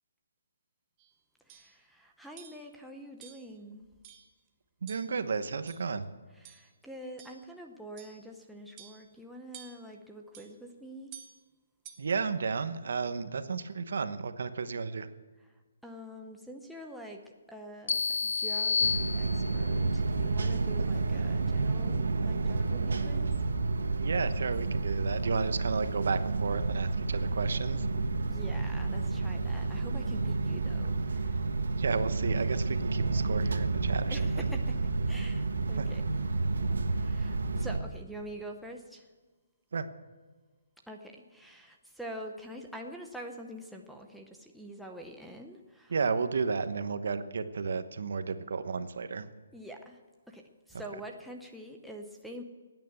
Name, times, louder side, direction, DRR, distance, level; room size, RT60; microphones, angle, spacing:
sound 1, 1.0-1.1 1.5-1.7 2.4-2.7 3.2-3.5 4.0-4.3 4.9-5.2 5.7-6.0 6.4-6.7 7.2-7.5 8.0-8.2 8.8-9.1 9.5-9.9 10.3-10.5 11.1-11.4 11.8-12.2, right 9 dB, 15° right, 1.0 m, -51 dB
voice 1, 1.5-3.9 6.4-11.1 15.8-17.2 17.5-23.3 28.3-31.4 34.1-34.8 35.1-36.0 36.9-39.0 40.9-45.9 49.5-50.0 50.3-52.4, equal, ahead, 0 dB, 0.6 m, -46 dB
voice 2, 4.8-6.1 12.0-15.1 24.0-27.9 31.8-34.5 35.7-35.9 39.7-39.9 45.9-49.3, right 5 dB, 60° right, 11 dB, 1.0 m, -33 dB
sound 2, 17.9-19.8, left 5 dB, 55° left, 0.4 m, -30 dB
sound 3, 18.8-37.8, right 3 dB, 75° right, 1.4 m, -30 dB
16.5 x 9.3 x 7.9 m, 1.4 s
hypercardioid pair, 175°, 0 cm